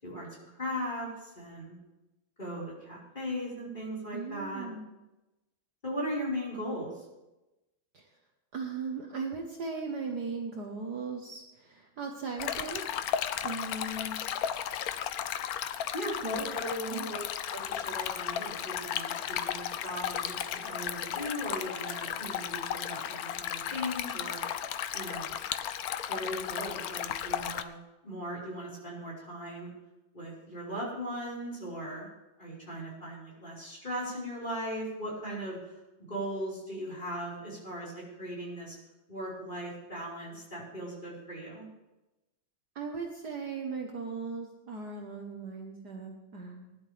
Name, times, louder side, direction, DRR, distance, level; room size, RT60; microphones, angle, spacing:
voice 1, 0.0-1.8 2.4-4.7 5.8-7.1 15.9-17.2 17.5-24.4 24.9-25.3 26.1-27.8 28.0-29.7 30.1-32.1 32.4-35.8 36.1-38.8 39.1-41.6, equal, 20° left, -6 dB, 5.1 m, -38 dB
voice 2, 4.1-4.9 7.9-8.1 8.5-13.1 13.4-14.2 16.2-16.4 16.9-17.1 17.9-18.1 42.7-46.8, right 4 dB, 55° right, 2 dB, 1.7 m, -38 dB
Stream, 12.4-27.6, left 10 dB, 75° left, 0.8 m, -35 dB
20.0 x 11.0 x 3.5 m, 1.0 s
omnidirectional pair, 2.2 m